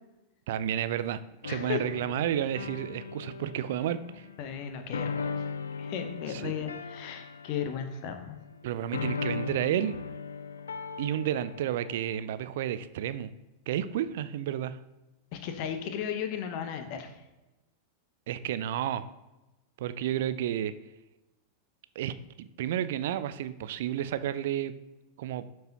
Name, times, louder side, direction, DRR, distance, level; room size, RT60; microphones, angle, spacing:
voice 1, 0.5-4.3 6.3-6.5 8.6-9.9 11.0-13.3 13.7-14.8 18.3-19.1 19.8-20.7 22.0-24.7 25.2-25.4, right 11 dB, 55° right, 14 dB, 0.4 m, -31 dB
sound 1, 1.4-8.6 8.9-12.2, left 5 dB, 70° left, 0.4 m, -38 dB
voice 2, 1.5-1.8 4.4-5.4 5.8-8.4 15.3-17.1, left 8 dB, 45° left, 7 dB, 0.9 m, -35 dB
11.5 x 4.6 x 2.9 m, 1.0 s
figure-of-eight pair, 90°, 0 cm